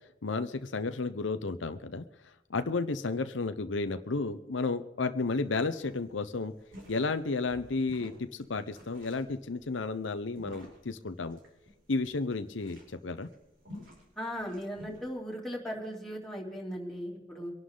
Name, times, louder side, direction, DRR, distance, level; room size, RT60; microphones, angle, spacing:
voice 1, 0.2-2.0 2.5-6.5 6.9-11.4 11.9-13.3, left 3 dB, 75° left, 9 dB, 0.8 m, -32 dB
sound 1, 5.5-5.6 5.8-15.1, left 1 dB, 75° right, 6.0 m, -51 dB
voice 2, 14.2-17.5, equal, ahead, -3 dB, 3.3 m, -38 dB
25.0 x 11.5 x 3.9 m, 0.90 s
head